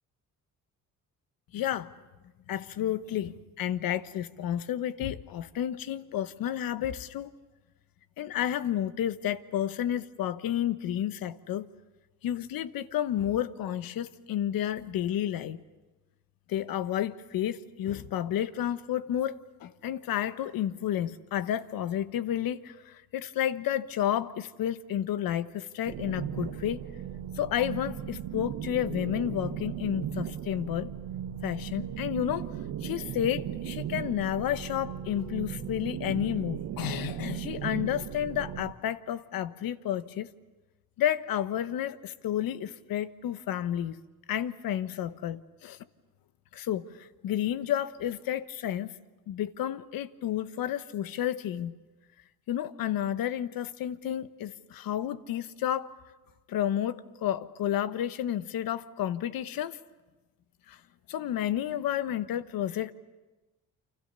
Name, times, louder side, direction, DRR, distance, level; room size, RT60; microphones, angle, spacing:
voice 1, 1.5-1.9 2.5-7.3 8.2-11.7 12.2-15.6 16.5-26.8 27.3-30.9 31.4-32.5 32.8-40.3 41.0-44.0 44.3-45.8 46.5-48.9 49.3-51.7 52.5-55.9 56.5-59.8 60.7-60.8 61.1-62.9, left 11 dB, 75° left, 1.2 m, -31 dB
sound 1, 25.9-38.7, right 10 dB, 80° right, 1.4 m, -37 dB
29.5 x 26.0 x 6.8 m
cardioid pair, 75°, 35 cm